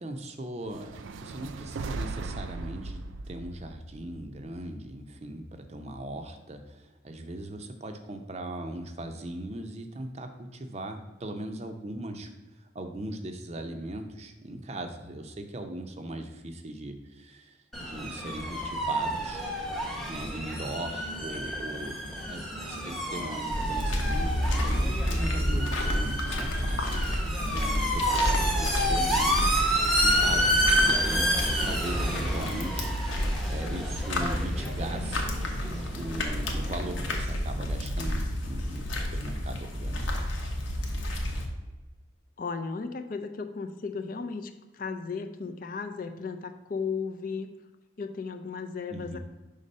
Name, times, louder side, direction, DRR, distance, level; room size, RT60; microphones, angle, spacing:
voice 1, 0.0-3.0 3.3-19.4 20.1-22.0 22.3-27.2 27.5-31.3 31.6-32.9 33.5-35.3 35.9-40.1 48.9-49.2, right 1 dB, 35° right, 6 dB, 0.5 m, -39 dB
sound 1, 0.6-4.9, right 3 dB, 90° right, 0.4 m, -38 dB
sound 2, 17.7-37.2, equal, ahead, 0.7 m, -30 dB
sound 3, 23.5-41.5, equal, 90° left, 1.0 m, -30 dB
voice 2, 42.4-47.5 48.0-49.2, left 5 dB, 45° left, 8 dB, 0.4 m, -35 dB
5.3 x 3.6 x 5.3 m, 1.2 s
head